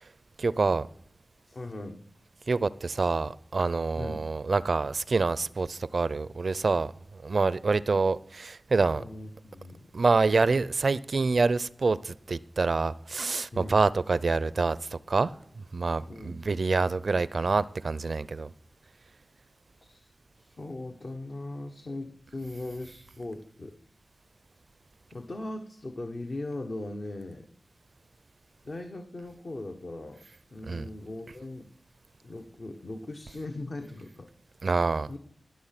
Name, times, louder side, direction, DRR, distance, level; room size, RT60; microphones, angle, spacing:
voice 1, 0.4-0.9 2.5-6.9 7.2-9.0 9.9-15.3 15.7-18.5 30.7-30.9 34.6-35.1, right 4 dB, 70° right, 0.4 m, -26 dB
voice 2, 1.4-2.0 4.0-4.2 8.9-9.9 13.5-13.8 16.1-16.4 19.8-20.1 20.4-23.7 25.1-27.5 28.6-30.2 30.5-31.7 32.2-34.3 35.1-35.2, left 2 dB, 60° left, 1.1 m, -39 dB
17.5 x 6.7 x 5.8 m
cardioid pair, 50°, 0 cm